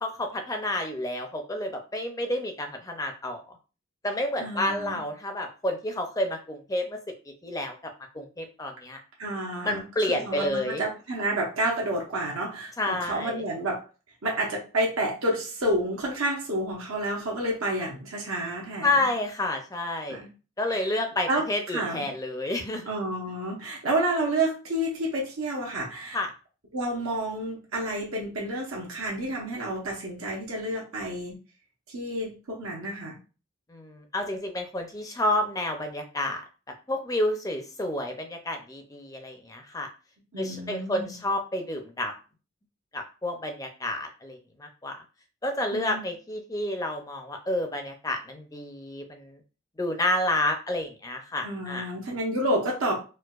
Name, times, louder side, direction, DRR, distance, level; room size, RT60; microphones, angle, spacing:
voice 1, 0.0-3.4 4.0-7.0 7.4-7.8 8.1-9.0 9.6-10.8 12.8-13.4 18.8-20.2 20.6-22.9 26.1-26.3 33.7-36.4 36.9-39.9 40.4-42.1 42.9-45.0 45.4-49.4 49.8-51.9, left 1 dB, 15° left, 4 dB, 0.4 m, -30 dB
voice 2, 4.4-5.0 9.2-13.8 14.2-18.9 20.1-20.3 20.8-20.9 21.3-22.1 22.8-26.2 26.7-31.3 31.9-33.2 40.3-41.2 45.7-46.0 51.4-53.0, right 1 dB, 80° right, -3 dB, 0.8 m, -30 dB
4.5 x 2.1 x 2.3 m, 0.34 s
head